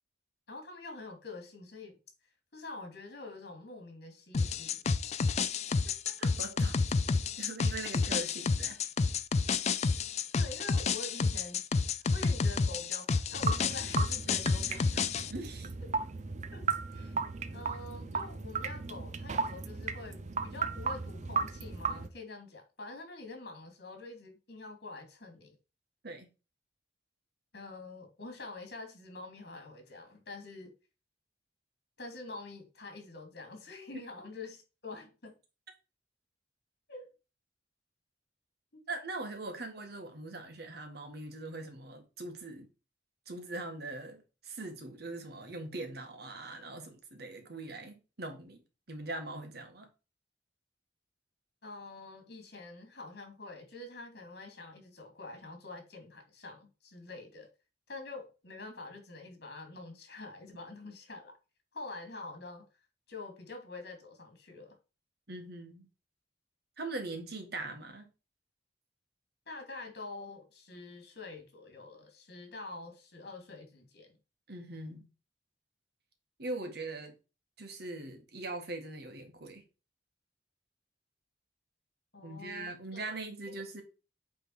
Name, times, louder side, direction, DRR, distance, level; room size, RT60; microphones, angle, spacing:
voice 1, 0.5-2.0 2.5-4.8 7.9-8.0 10.3-11.6 11.9-15.1 15.8-16.0 16.5-17.2 17.5-25.6 27.5-30.7 32.0-35.4 36.9-37.1 38.7-38.9 51.6-57.5 57.9-61.3 61.7-62.7 63.1-64.8 69.5-74.2 82.1-83.1 83.4-83.5, left 3 dB, 65° left, 2.6 m, -46 dB
sound 1, 4.3-15.3, left 4 dB, 40° left, 0.4 m, -30 dB
voice 2, 6.1-6.8 7.4-8.8 15.3-15.7 26.0-26.3 38.9-42.7 43.3-48.6 48.9-49.9 65.3-65.9 66.8-68.1 74.5-75.1 76.4-77.2 77.6-79.6 82.2-83.8, right 2 dB, 65° right, 1.7 m, -41 dB
sound 2, 13.3-22.1, right 5 dB, 40° right, 0.6 m, -36 dB
8.5 x 3.7 x 4.7 m
head